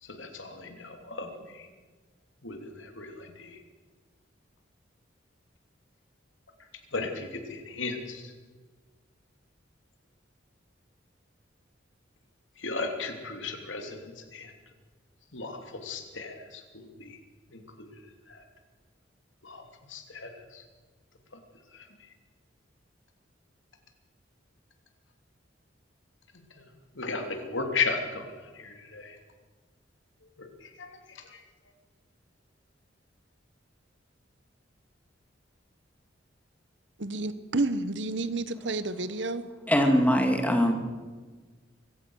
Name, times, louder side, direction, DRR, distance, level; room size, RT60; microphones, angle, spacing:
voice 1, 0.0-1.7 2.4-3.6 6.9-8.3 12.6-14.5 15.3-17.2 17.5-17.9 18.3-18.4 19.4-19.6 19.9-20.6 21.7-21.9 26.6-26.7 27.0-29.2 30.4-31.4, left 4 dB, 80° left, 5 dB, 3.1 m, -36 dB
voice 2, 37.0-39.4, right 2 dB, 70° right, 13 dB, 1.3 m, -30 dB
voice 3, 39.7-40.7, equal, 10° left, 4 dB, 2.5 m, -22 dB
24.5 x 16.0 x 6.4 m, 1.4 s
head